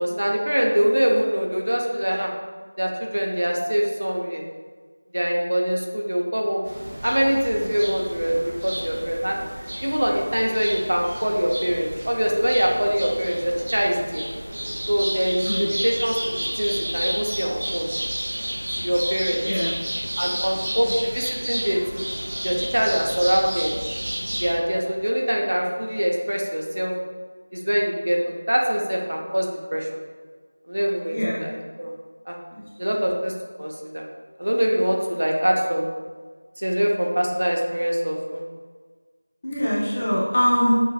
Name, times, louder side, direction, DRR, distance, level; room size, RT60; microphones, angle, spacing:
voice 1, 0.0-2.3 2.8-4.4 5.1-6.6 7.0-9.4 9.8-14.2 14.9-17.9 18.8-19.5 20.2-22.0 22.4-23.7 24.4-26.9 27.5-29.9 30.7-31.9 32.3-32.4 32.8-33.3 33.6-34.1 34.4-35.9 36.6-38.4, equal, 65° right, -1 dB, 0.8 m, -23 dB
sound 1, 6.6-24.5, equal, 25° right, 0.5 m, -31 dB
voice 2, 15.4-15.8 19.4-19.8 20.8-20.9 31.1-31.4 32.5-32.6 39.4-40.7, equal, 20° left, -8 dB, 0.6 m, -23 dB
6.4 x 2.5 x 2.4 m, 1.5 s
figure-of-eight pair, 175°, 0 cm